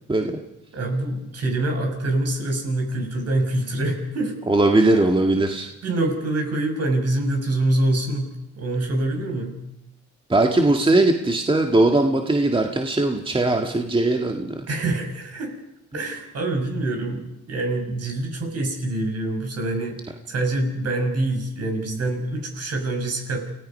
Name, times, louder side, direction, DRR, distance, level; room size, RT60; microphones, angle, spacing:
voice 1, 0.1-0.4 4.5-5.7 10.3-14.7, right 2 dB, 15° right, 3 dB, 1.8 m, -20 dB
voice 2, 0.7-4.3 4.7-4.8 5.3-5.4 5.8-9.6 14.7-15.5 15.9-20.0 20.3-23.4, right 2 dB, 55° right, 4 dB, 6.3 m, -25 dB
29.0 x 17.0 x 5.5 m, 0.87 s
cardioid pair, 90°, 30 cm